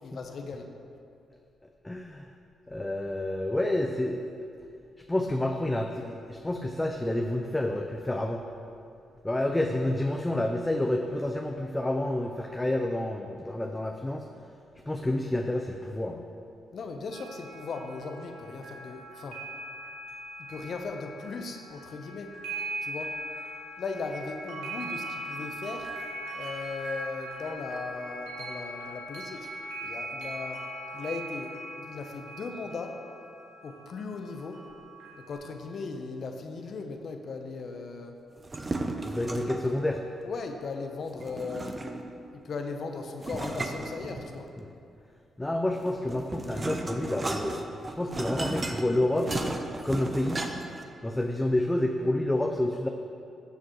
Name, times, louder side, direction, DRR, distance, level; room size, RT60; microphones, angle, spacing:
voice 1, 0.0-0.7 16.7-19.4 20.4-22.4 22.8-23.2 23.8-25.9 26.3-29.5 29.8-30.7 30.9-33.0 33.6-34.6 35.1-38.1 40.2-41.8 42.3-44.5, left 4 dB, 60° left, 5 dB, 0.9 m, -38 dB
voice 2, 1.8-2.3 2.7-4.2 5.1-8.4 9.2-14.3 14.9-16.2 39.0-40.0 45.4-49.3 49.8-50.5 51.0-52.9, left 1 dB, 15° left, 3 dB, 0.6 m, -29 dB
sound 1, 17.1-35.3, right 1 dB, 85° right, 1.7 m, -40 dB
sound 2, 38.4-39.8 41.2-42.2 43.2-44.6 45.8-50.8, right 2 dB, 35° right, 0.8 m, -35 dB
13.0 x 7.1 x 3.1 m, 2.6 s
supercardioid pair, 50°, 0 cm